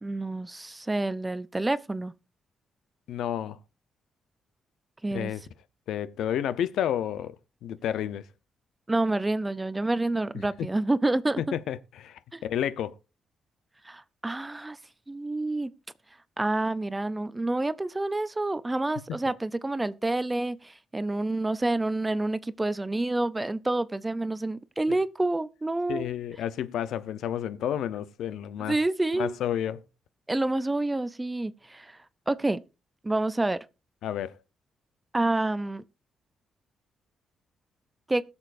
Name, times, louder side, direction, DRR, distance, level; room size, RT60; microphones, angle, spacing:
voice 1, 0.0-2.1 5.0-5.3 8.9-11.4 12.3-12.4 13.8-14.8 15.1-15.7 16.4-26.1 28.6-29.4 30.3-32.0 32.3-32.6 33.0-33.6 35.1-35.8 38.1-38.2, right 2 dB, 15° right, 0.5 m, -28 dB
voice 2, 3.1-3.6 5.1-5.4 5.9-7.4 7.6-8.2 11.4-12.9 24.9-25.0 25.9-28.8 29.1-29.8 34.0-34.4, left 10 dB, 85° left, 0.7 m, -31 dB
21.0 x 7.0 x 2.6 m
cardioid pair, 130°, 0 cm